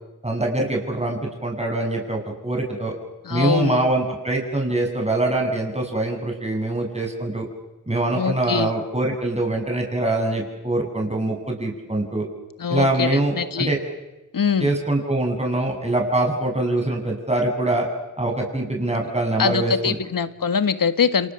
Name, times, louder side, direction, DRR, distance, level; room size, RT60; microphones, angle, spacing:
voice 1, 0.2-2.9 3.3-7.5 7.9-12.2 12.7-13.8 14.6-17.9 18.2-19.9, right 2 dB, 20° right, 1 dB, 7.7 m, -24 dB
voice 2, 3.2-3.9 8.1-8.7 12.6-13.7 14.3-14.7 19.4-21.3, left 6 dB, 75° left, 12 dB, 1.8 m, -23 dB
30.0 x 27.5 x 7.2 m, 1.0 s
cardioid pair, 55°, 34 cm